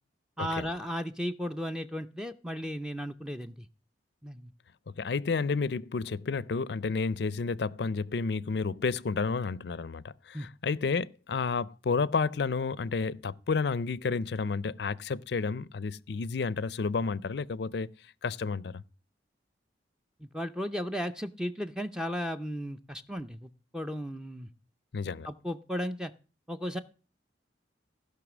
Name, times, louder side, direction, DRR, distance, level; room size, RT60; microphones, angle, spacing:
voice 1, 0.4-3.7 4.2-4.5 10.3-10.5 20.2-24.5 25.2-26.1 26.5-26.8, equal, 5° right, 0.5 m, -35 dB
voice 2, 4.9-17.9 18.2-18.8 24.9-25.3, left 4 dB, 65° left, 0.5 m, -31 dB
16.0 x 5.7 x 6.1 m
head